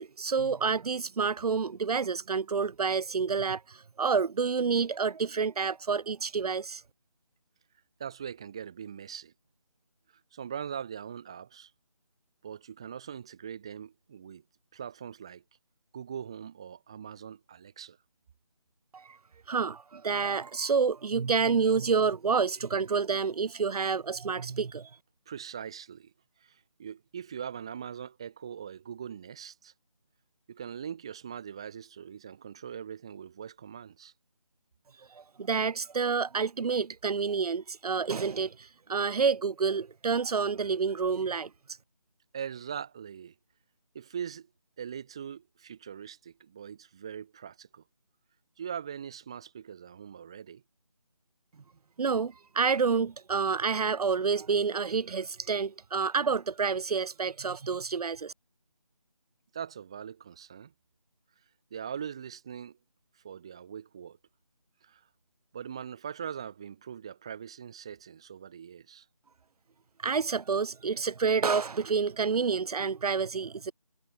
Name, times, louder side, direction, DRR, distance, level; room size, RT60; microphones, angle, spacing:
voice 1, 0.0-6.8 18.9-19.2 19.5-24.9 35.1-41.5 52.0-58.3 70.0-73.7, right 5 dB, 80° right, 0.5 m, -28 dB
voice 2, 8.0-9.3 10.3-11.7 12.4-14.4 14.7-15.4 15.9-18.0 25.3-26.1 26.4-29.7 30.5-34.1 42.3-43.3 43.9-44.5 44.8-47.8 48.6-50.6 59.5-60.7 61.7-62.8 63.1-64.2 64.8-65.0 65.5-69.1, right 8 dB, 10° right, 1.3 m, -41 dB
figure-of-eight pair, 175°, 19 cm